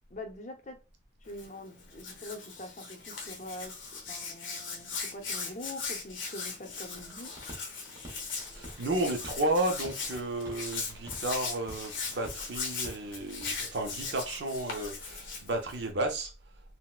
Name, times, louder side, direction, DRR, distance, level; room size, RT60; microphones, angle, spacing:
voice 1, 0.1-0.8 1.2-3.8 4.1-7.4, left 1 dB, 40° left, 0.7 m, -44 dB
Hands, 1.3-15.9, left 5 dB, 90° left, 0.8 m, -39 dB
sound 1, 6.9-13.5, right 1 dB, 20° right, 1.0 m, -49 dB
voice 2, 8.5-16.3, right 1 dB, 65° right, 0.6 m, -32 dB
4.0 x 2.1 x 2.3 m
head